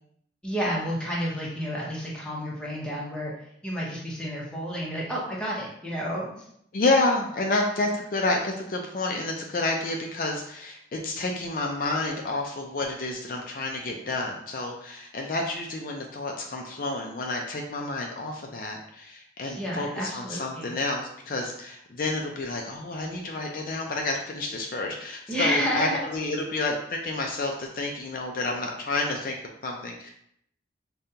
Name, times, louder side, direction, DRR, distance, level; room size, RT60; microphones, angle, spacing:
voice 1, 0.4-6.5 19.4-20.7 25.3-26.0, equal, 5° left, -5 dB, 0.7 m, -30 dB
voice 2, 6.7-29.3 29.6-30.1, left 2 dB, 50° left, 1 dB, 0.4 m, -29 dB
5.1 x 2.2 x 2.7 m, 0.71 s
head